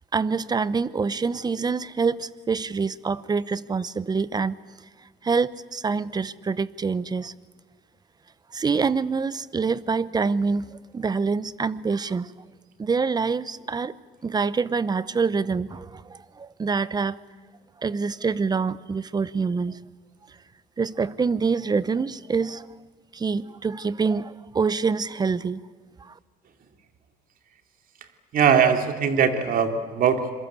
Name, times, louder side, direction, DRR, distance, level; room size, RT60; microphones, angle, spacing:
voice 1, 0.1-4.6 5.2-7.3 8.5-10.6 10.9-12.3 12.8-13.9 14.2-17.2 17.8-19.8 20.8-22.7 23.1-25.6 26.1-26.2, right 5 dB, 25° right, 18 dB, 0.8 m, -26 dB
voice 2, 28.3-30.3, right 7 dB, 55° right, 7 dB, 2.9 m, -20 dB
27.0 x 22.0 x 8.3 m, 1.4 s
cardioid pair, 110°, 17 cm